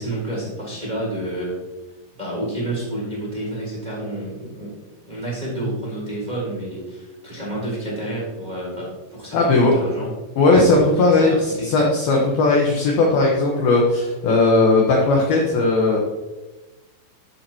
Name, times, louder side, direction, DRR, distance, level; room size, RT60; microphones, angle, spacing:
voice 1, 0.0-1.6 2.2-4.7 5.0-10.1 10.6-11.9, right 1 dB, 10° right, -6 dB, 3.1 m, -30 dB
voice 2, 9.3-9.7 10.4-16.0, left 2 dB, 70° left, -2 dB, 2.5 m, -17 dB
15.0 x 7.3 x 3.0 m, 1.1 s
omnidirectional pair, 5.7 m